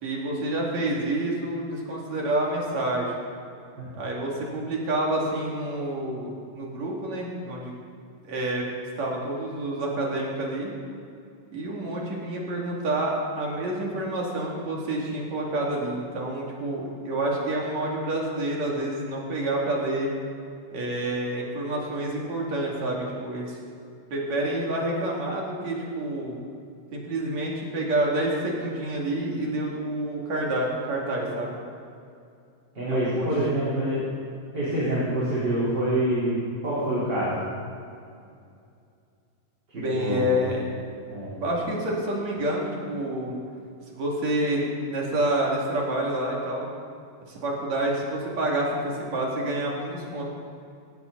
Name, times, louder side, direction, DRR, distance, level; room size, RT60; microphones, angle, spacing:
voice 1, 0.0-3.2 3.9-7.7 8.3-8.7 9.0-10.7 11.5-20.1 20.7-23.6 24.1-26.3 26.9-31.6 32.8-33.3 39.8-40.6 41.3-43.4 43.9-46.7 47.3-50.2, right 1 dB, 65° right, -3 dB, 4.0 m, -28 dB
voice 2, 32.7-34.0 34.5-36.4 36.6-37.4 39.7-40.4 41.1-41.3, right 1 dB, 35° right, -10 dB, 4.6 m, -26 dB
19.5 x 16.0 x 4.1 m, 2.4 s
omnidirectional pair, 3.4 m